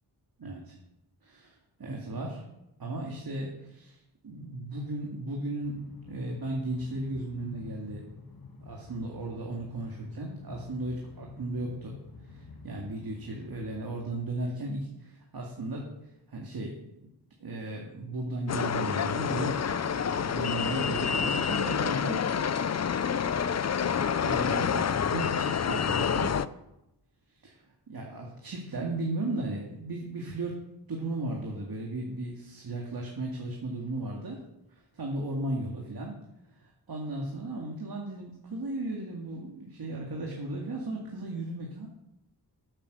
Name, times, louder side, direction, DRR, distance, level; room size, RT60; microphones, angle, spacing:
voice 1, 0.4-0.8 1.2-2.4 2.8-8.1 8.6-12.0 12.2-17.1 17.4-22.7 23.0-23.3 24.2-26.4 27.4-27.5 27.9-30.6 30.9-34.4 34.7-36.1 36.5-41.9, right 2 dB, 60° right, -1 dB, 2.2 m, -36 dB
Train, 5.6-14.5, left 3 dB, 60° left, 1.6 m, -48 dB
sound 1, 18.5-26.5, left 7 dB, 40° left, 0.5 m, -28 dB
11.0 x 8.9 x 6.7 m, 0.90 s
wide cardioid pair, 105°, 41 cm